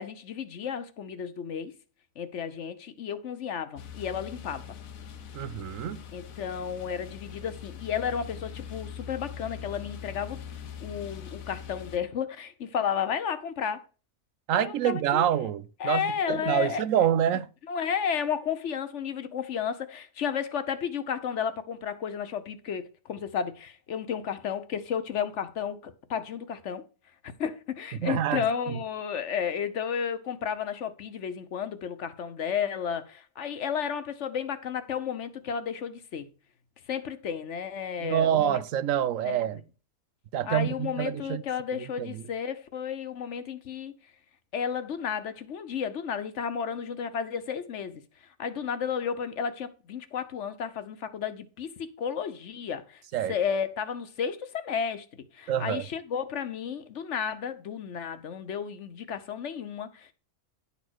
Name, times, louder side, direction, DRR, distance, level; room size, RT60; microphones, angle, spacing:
voice 1, 0.0-1.7 2.2-4.8 6.1-10.4 10.8-13.8 14.5-15.3 15.8-16.8 17.7-26.8 27.4-36.3 36.9-38.6 39.2-39.4 40.5-43.9 44.5-48.0 48.4-53.0 53.3-55.1 55.3-60.1, left 7 dB, 65° left, 1.1 m, -32 dB
sound 1, 3.8-12.0, left 8 dB, 85° left, 1.3 m, -42 dB
voice 2, 5.3-6.0 14.5-17.5 27.9-28.8 38.0-39.6 40.3-41.4 42.0-42.2 53.1-53.3 55.5-55.9, right 10 dB, 75° right, 1.0 m, -27 dB
10.5 x 4.2 x 6.2 m
omnidirectional pair, 1.4 m